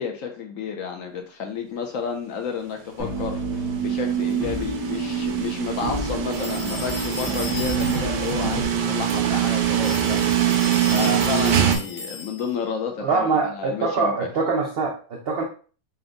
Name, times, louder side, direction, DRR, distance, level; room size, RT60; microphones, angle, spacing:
voice 1, 0.0-10.2 10.9-14.1, left 6 dB, 70° left, 4 dB, 0.8 m, -31 dB
sound 1, 3.0-8.6, right 4 dB, 5° right, 0.8 m, -28 dB
sound 2, 3.4-11.8, right 9 dB, 85° right, 1.2 m, -24 dB
sound 3, 6.3-8.3 9.7-12.6, left 4 dB, 30° left, 0.6 m, -36 dB
voice 2, 13.0-15.4, right 4 dB, 65° right, 0 dB, 0.5 m, -24 dB
4.3 x 2.2 x 3.8 m, 0.39 s
omnidirectional pair, 1.8 m